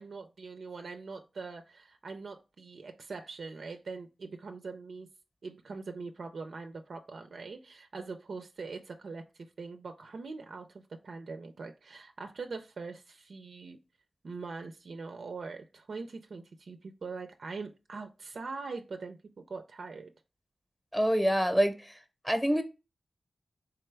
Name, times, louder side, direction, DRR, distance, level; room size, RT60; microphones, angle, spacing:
voice 1, 0.0-5.1 5.4-13.8 14.2-19.2 19.5-20.1, right 4 dB, 75° right, 0.4 m, -42 dB
voice 2, 20.9-22.0 22.2-22.6, equal, 5° left, 0.7 m, -26 dB
3.7 x 3.3 x 3.3 m
cardioid pair, 55°, 0 cm